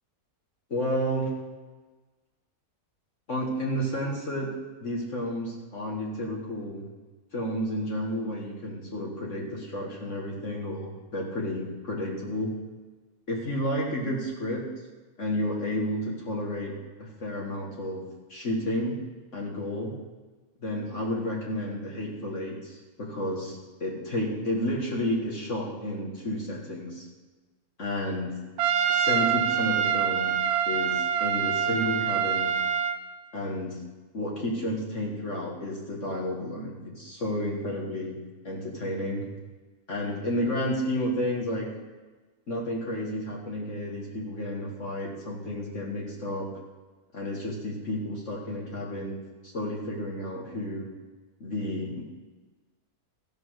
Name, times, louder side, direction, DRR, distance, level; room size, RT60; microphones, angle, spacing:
voice 1, 0.7-1.3 3.3-4.5 4.8-6.9 7.3-12.6 13.3-14.7 15.2-19.0 19.3-20.0 20.6-27.1 27.8-28.4 28.9-30.4 30.7-32.5 33.3-33.8 34.1-38.2 38.4-39.3 39.9-41.7 42.5-46.5 47.1-49.2 49.5-50.9 51.4-52.0, left 1 dB, 50° left, -3 dB, 1.9 m, -31 dB
Trumpet, 28.6-33.0, right 8 dB, 80° right, 1.2 m, -25 dB
14.0 x 6.1 x 6.4 m, 1.3 s
omnidirectional pair, 1.6 m